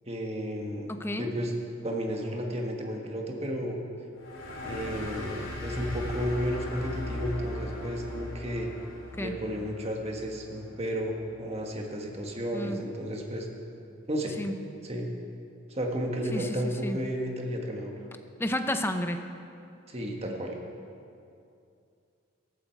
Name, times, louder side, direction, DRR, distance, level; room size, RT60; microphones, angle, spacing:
voice 1, 0.1-1.5 1.8-3.8 4.6-8.7 9.2-13.5 14.1-14.4 14.8-15.1 15.7-18.0 19.9-20.5, equal, 30° right, 1 dB, 1.5 m, -33 dB
voice 2, 0.9-1.3 9.1-9.4 12.5-12.8 14.4-14.6 16.3-17.0 18.4-19.2, left 1 dB, 10° left, 7 dB, 0.6 m, -31 dB
sound 1, 4.2-11.3, left 1 dB, 80° left, 3.3 m, -38 dB
15.0 x 12.5 x 4.6 m, 2.5 s
head